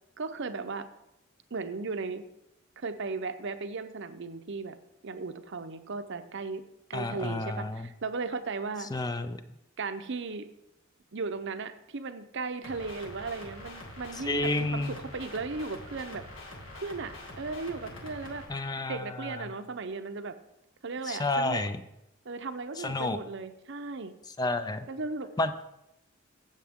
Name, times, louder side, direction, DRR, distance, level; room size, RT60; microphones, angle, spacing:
voice 1, 0.2-0.9 1.5-2.2 2.8-4.8 5.0-6.6 6.9-8.9 9.8-10.5 11.1-16.3 16.7-18.5 18.9-20.4 20.8-21.6 22.2-24.1 24.9-25.3, right 4 dB, 60° right, 10 dB, 0.7 m, -36 dB
voice 2, 6.9-7.9 8.9-9.4 14.2-15.0 18.5-19.5 21.1-21.8 22.8-23.2 24.4-24.9 25.4-25.7, left 2 dB, 20° left, 10 dB, 0.5 m, -30 dB
sound 1, 12.6-18.4, left 1 dB, 70° left, 2.1 m, -45 dB
13.0 x 8.3 x 3.6 m, 0.87 s
head